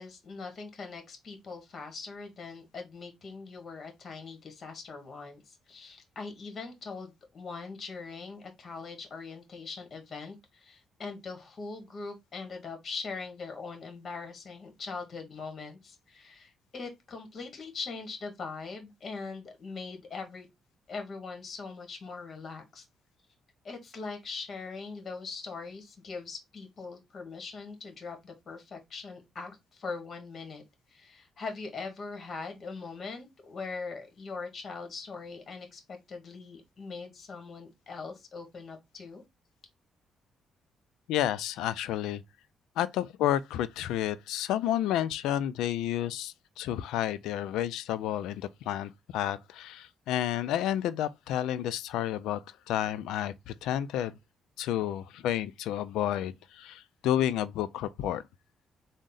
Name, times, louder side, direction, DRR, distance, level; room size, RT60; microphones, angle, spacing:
voice 1, 0.0-20.5 20.9-22.8 23.6-30.6 30.9-39.2, left 4 dB, 45° left, 1.3 m, -41 dB
voice 2, 41.1-42.2 42.8-52.4 52.7-54.1 54.6-58.2, left 11 dB, 90° left, 0.3 m, -30 dB
3.6 x 2.1 x 3.8 m
cardioid pair, 90°, 0 cm